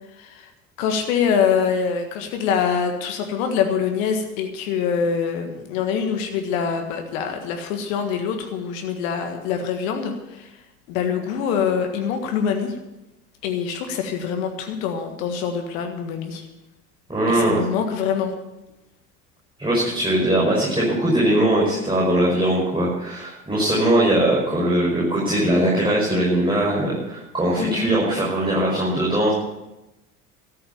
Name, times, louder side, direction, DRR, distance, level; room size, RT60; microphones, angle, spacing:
voice 1, 0.1-0.5 0.8-10.5 10.9-12.8 13.4-16.5 17.3-18.3 27.6-27.8, left 7 dB, 65° left, 5 dB, 1.7 m, -24 dB
voice 2, 17.1-17.6 19.6-29.3, right 1 dB, 10° right, -6 dB, 5.8 m, -20 dB
13.5 x 8.6 x 8.4 m, 0.97 s
figure-of-eight pair, 65°, 42 cm